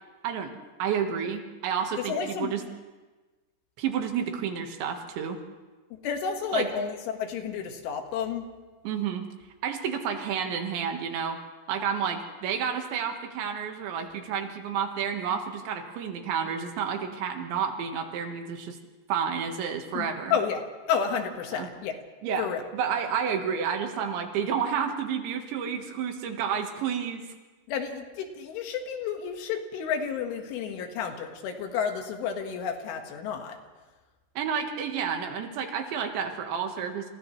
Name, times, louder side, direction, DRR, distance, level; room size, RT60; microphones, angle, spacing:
voice 1, 0.8-2.6 3.8-5.4 6.5-6.7 8.8-9.3 9.6-11.4 11.7-18.8 19.1-20.4 21.5-21.7 22.2-22.5 22.7-27.2 34.4-37.1, right 7 dB, 70° right, 5 dB, 3.6 m, -30 dB
voice 2, 2.1-2.5 5.9-8.5 19.9-20.6 20.9-21.9 22.4-22.6 27.7-33.6, left 7 dB, 80° left, 4 dB, 4.1 m, -31 dB
29.0 x 29.0 x 3.2 m, 1.3 s
omnidirectional pair, 5.6 m